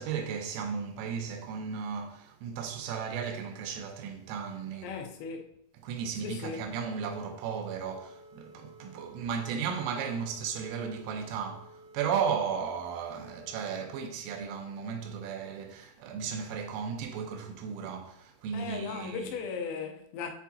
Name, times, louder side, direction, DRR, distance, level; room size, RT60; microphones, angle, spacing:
voice 1, 0.0-4.9 5.8-19.3, right 6 dB, 85° right, 3.2 m, -35 dB
voice 2, 4.8-5.5 6.2-6.6 18.5-20.3, left 5 dB, 85° left, 3.4 m, -37 dB
sound 1, 7.8-14.0, right 1 dB, 60° right, 3.1 m, -54 dB
8.1 x 4.8 x 2.7 m
omnidirectional pair, 5.9 m